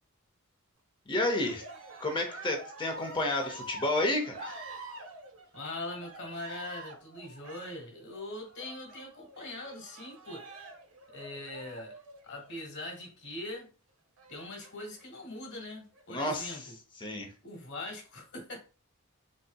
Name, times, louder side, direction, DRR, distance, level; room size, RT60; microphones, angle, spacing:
voice 1, 1.1-1.6 2.0-4.6 16.1-16.6 17.0-17.3, left 1 dB, 20° left, 0.6 m, -31 dB
Cheering, 1.2-12.9 14.2-15.0 15.8-16.4, right 2 dB, 60° right, 0.7 m, -48 dB
voice 2, 5.5-10.5 11.1-11.9 12.2-13.7 14.3-16.8 17.4-18.6, left 1 dB, 55° left, 1.2 m, -41 dB
4.0 x 2.7 x 2.2 m
head